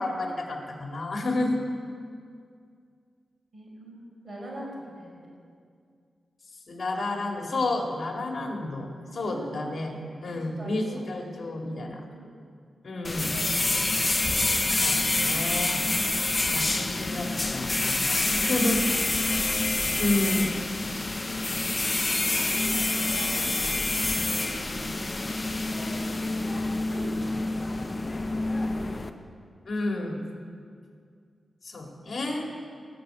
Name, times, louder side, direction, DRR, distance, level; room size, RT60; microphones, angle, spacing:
voice 1, 0.0-1.6 6.7-9.9 10.2-12.0 12.8-13.4 14.8-16.1 16.5-18.9 20.0-20.5 29.6-30.2 31.6-32.5, left 2 dB, 45° left, 1 dB, 2.3 m, -30 dB
voice 2, 3.5-5.3 9.0-9.7 10.2-11.0 11.6-11.8 12.1-12.4 16.6-17.3 18.3-19.5 22.5-23.9 25.8-26.1 26.4-26.6 26.9-27.1 28.6-29.1, right 1 dB, 45° right, -3 dB, 5.0 m, -44 dB
sound 1, 13.0-29.1, left 2 dB, 20° left, 0.8 m, -27 dB
18.5 x 6.7 x 9.0 m, 2.2 s
wide cardioid pair, 135°, 0 cm